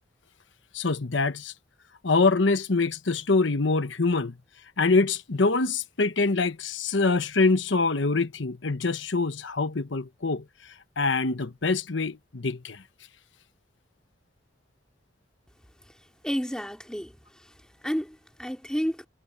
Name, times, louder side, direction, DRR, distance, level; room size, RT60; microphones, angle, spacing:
voice 1, 0.7-1.5 2.0-4.4 4.8-10.4 11.0-12.8, left 3 dB, 80° left, 1.1 m, -24 dB
voice 2, 16.2-17.1 17.8-19.1, equal, 5° left, 2.5 m, -30 dB
head